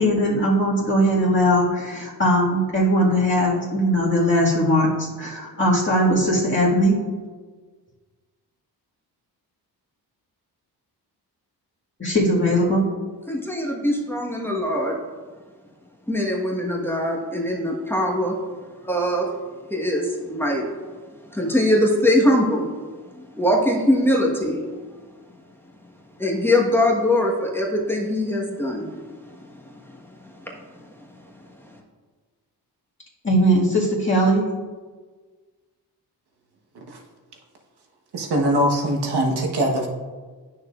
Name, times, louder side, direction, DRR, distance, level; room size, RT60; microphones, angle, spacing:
voice 1, 0.0-7.0 12.0-12.9 33.2-34.4, equal, 30° left, -6 dB, 1.9 m, -19 dB
voice 2, 13.3-15.0 16.1-18.4 18.8-19.3 19.7-20.7 21.3-22.7 23.1-24.6 26.2-29.8 30.2-31.1 31.6-31.7, left 1 dB, 5° left, -2 dB, 1.3 m, -22 dB
voice 3, 38.1-39.9, right 1 dB, 70° right, 1 dB, 1.3 m, -22 dB
9.2 x 6.6 x 2.5 m, 1.4 s
cardioid pair, 80°, 41 cm